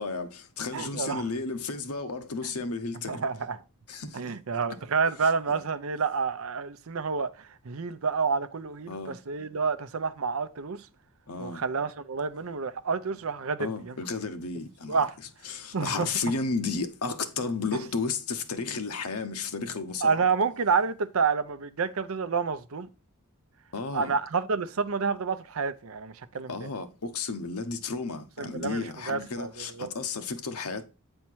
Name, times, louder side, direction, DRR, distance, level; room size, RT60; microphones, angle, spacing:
voice 1, 0.0-3.2 3.9-4.2 4.7-4.8 5.5-5.6 8.9-9.2 11.3-11.6 13.6-15.1 15.4-20.3 23.7-24.2 26.5-30.9, left 4 dB, 85° left, 0.9 m, -33 dB
voice 2, 0.7-1.2 2.4-2.5 3.1-3.6 4.1-10.8 11.4-13.9 14.9-15.1 15.7-16.1 20.0-22.9 23.9-26.7 28.4-29.9, right 5 dB, 70° right, 0.6 m, -29 dB
8.4 x 4.4 x 4.6 m
head